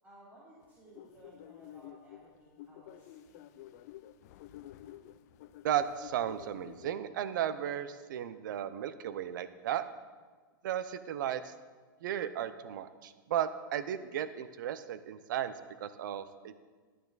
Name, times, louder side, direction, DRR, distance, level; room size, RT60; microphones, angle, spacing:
voice 1, 0.0-3.6, right 1 dB, 15° right, -8 dB, 2.8 m, -58 dB
sound 1, 0.6-7.0, left 12 dB, 50° left, 0.5 m, -51 dB
voice 2, 5.6-9.8 10.6-11.5 12.0-16.6, right 10 dB, 60° right, 13 dB, 0.7 m, -35 dB
11.0 x 9.4 x 4.0 m, 1.4 s
hypercardioid pair, 140°, 12 cm